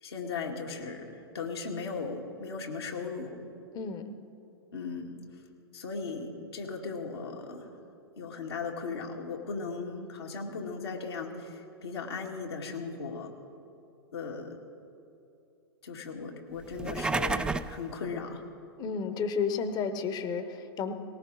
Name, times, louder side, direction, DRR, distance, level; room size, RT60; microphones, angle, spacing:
voice 1, 0.0-3.4 4.7-5.2 5.7-7.7 8.2-13.3 14.1-14.6 15.8-18.5, left 4 dB, 75° left, 0 dB, 2.4 m, -37 dB
sound 1, 16.7-17.8, right 3 dB, 5° right, 0.4 m, -30 dB
voice 2, 18.8-20.9, left 5 dB, 30° left, 10 dB, 1.1 m, -32 dB
18.5 x 18.5 x 4.2 m, 2.8 s
hypercardioid pair, 110°, 13 cm